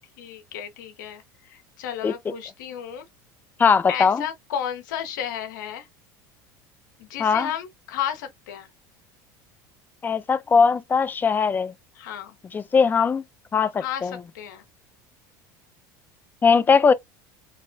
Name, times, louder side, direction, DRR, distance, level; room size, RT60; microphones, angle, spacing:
voice 1, 0.2-3.1 3.9-5.9 7.0-8.7 11.9-12.4 13.8-14.6, left 9 dB, 85° left, 0.6 m, -33 dB
voice 2, 3.6-4.2 7.2-7.5 10.0-11.7 12.5-13.2 13.5-14.1 16.4-16.9, left 5 dB, 20° left, 0.3 m, -20 dB
2.8 x 2.0 x 2.5 m
supercardioid pair, 95°, 10 cm